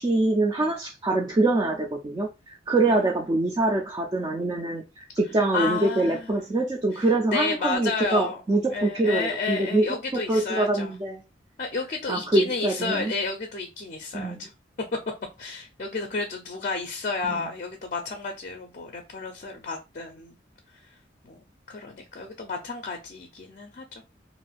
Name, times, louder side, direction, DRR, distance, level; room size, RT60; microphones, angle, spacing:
voice 1, 0.0-9.8 10.3-11.2 12.1-13.1 14.1-14.4 17.2-17.4, right 2 dB, 20° right, 0.3 m, -24 dB
voice 2, 5.5-6.3 6.9-8.4 8.7-10.9 11.6-14.5 15.4-20.4 20.7-21.0 21.2-21.3 21.7-24.0, left 4 dB, 45° left, 0.4 m, -31 dB
2.5 x 2.3 x 3.2 m
head